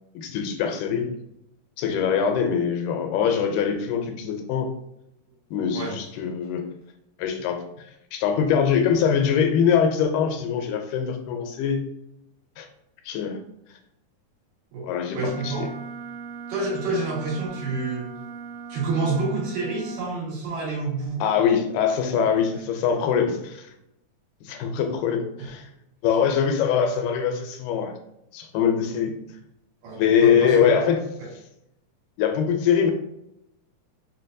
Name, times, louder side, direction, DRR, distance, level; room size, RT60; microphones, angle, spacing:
voice 1, 0.2-1.1 1.8-4.7 5.5-6.6 7.2-7.6 8.1-11.8 12.6-12.7 13.1-13.4 14.8-15.2 15.4-15.7 21.2-23.7 24.4-25.7 26.0-27.9 28.3-29.1 29.9-31.0 32.2-32.9, left 7 dB, 90° left, 5 dB, 2.2 m, -23 dB
voice 2, 14.7-15.7 16.5-18.1 18.7-21.2 25.4-25.5 29.8-30.7 31.2-31.3, right 3 dB, 90° right, -6 dB, 3.2 m, -28 dB
Wind instrument woodwind instrument, 15.1-20.1, right 5 dB, 70° right, 1.6 m, -38 dB
6.1 x 2.2 x 2.6 m, 0.81 s
omnidirectional pair, 3.6 m